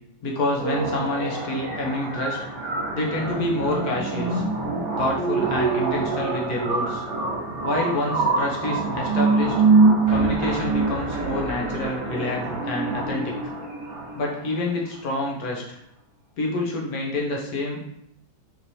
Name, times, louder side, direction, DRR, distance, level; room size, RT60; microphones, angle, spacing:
voice 1, 0.2-2.4 2.9-4.4 5.0-7.0 7.6-9.5 10.1-13.5 14.1-15.8 16.4-17.8, left 2 dB, 60° left, -2 dB, 1.0 m, -27 dB
sound 1, 0.6-14.6, right 3 dB, 45° right, 1.2 m, -25 dB
sound 2, 10.1-15.0, equal, 75° right, 0.5 m, -36 dB
4.4 x 3.0 x 2.7 m, 0.75 s
omnidirectional pair, 2.2 m